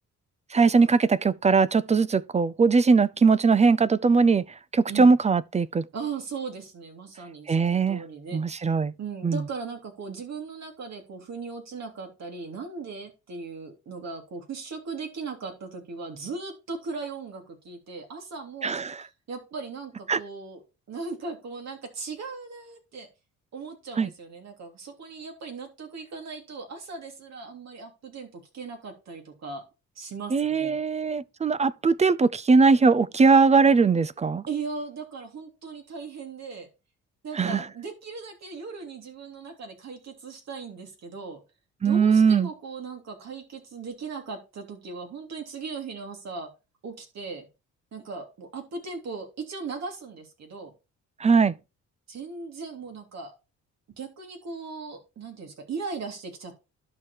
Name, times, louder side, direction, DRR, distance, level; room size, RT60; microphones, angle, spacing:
voice 1, 0.5-4.5 4.7-5.8 7.5-8.0 8.3-8.9 9.2-9.4 18.6-19.0 20.1-20.2 24.0-24.1 30.3-34.5 37.3-37.6 41.8-42.5 51.2-51.5, right 4 dB, 25° right, 0.4 m, -20 dB
voice 2, 5.9-8.7 9.0-20.6 20.9-23.1 23.5-29.6 29.9-30.8 34.5-36.7 37.2-41.4 41.8-46.5 46.8-47.5 47.9-50.7 52.1-53.3 54.0-56.6, right 4 dB, 60° right, 3.3 m, -38 dB
11.5 x 4.7 x 4.4 m
cardioid pair, 90°, 30 cm